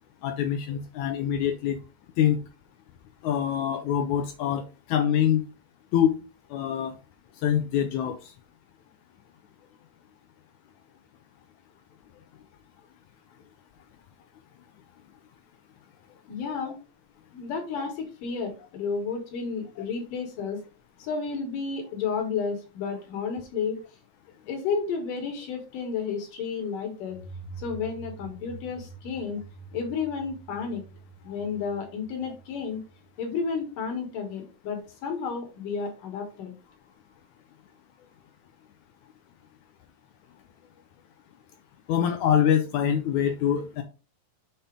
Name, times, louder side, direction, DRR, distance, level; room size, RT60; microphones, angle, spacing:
voice 1, 0.2-1.8 2.2-2.4 3.2-5.4 5.9-6.1 6.5-6.9 7.4-8.3 41.9-43.8, left 9 dB, 85° left, 7 dB, 1.7 m, -25 dB
voice 2, 16.3-16.8 17.3-20.6 21.0-23.8 24.5-27.2 27.6-29.4 29.7-30.8 31.2-32.8 33.2-36.5, left 5 dB, 70° left, 4 dB, 2.8 m, -32 dB
sound 1, 27.1-33.6, right 4 dB, 35° right, 1.9 m, -46 dB
6.8 x 4.3 x 3.6 m, 0.32 s
omnidirectional pair, 4.1 m